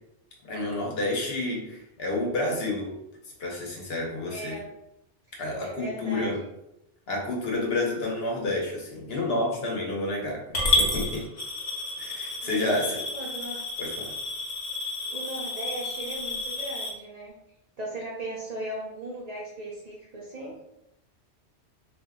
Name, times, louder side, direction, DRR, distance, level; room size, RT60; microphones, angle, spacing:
voice 1, 0.5-2.9 3.4-4.6 5.4-6.4 7.1-11.3 12.0-13.0 13.8-14.1, left 2 dB, 65° left, -2 dB, 1.0 m, -29 dB
voice 2, 4.3-4.7 5.6-6.5 12.4-13.6 15.1-17.3 17.8-20.5, right 1 dB, 50° right, -4 dB, 0.5 m, -37 dB
Coin (dropping) / Glass, 10.5-16.9, left 2 dB, 45° left, 0.7 m, -30 dB
2.5 x 2.2 x 3.6 m, 0.84 s
omnidirectional pair, 1.2 m